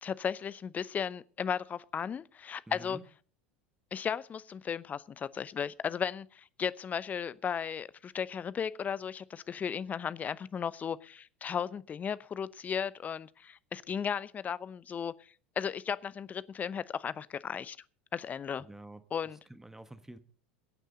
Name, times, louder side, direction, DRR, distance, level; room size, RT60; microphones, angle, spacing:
voice 1, 0.0-3.0 3.9-15.1 15.6-17.8 18.1-18.6 19.1-19.4, left 7 dB, 25° left, 0.8 m, -35 dB
voice 2, 2.7-3.0 18.6-19.0 19.5-20.2, right 1 dB, 5° right, 1.4 m, -48 dB
23.0 x 9.2 x 4.0 m
figure-of-eight pair, 80°, 6 cm